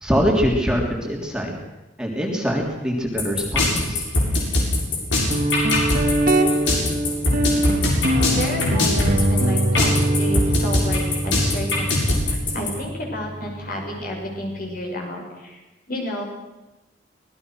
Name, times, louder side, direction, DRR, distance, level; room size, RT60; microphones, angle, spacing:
voice 1, 0.0-1.5 2.0-4.0, equal, 5° right, -1 dB, 3.4 m, -23 dB
sound 1, 3.2-12.7, left 2 dB, 75° left, 7.3 m, -21 dB
Guitar, 5.3-14.8, right 1 dB, 50° right, 2.1 m, -24 dB
voice 2, 8.0-15.6 15.9-16.2, equal, 50° left, 0 dB, 6.5 m, -31 dB
25.5 x 19.5 x 6.4 m, 1.0 s
head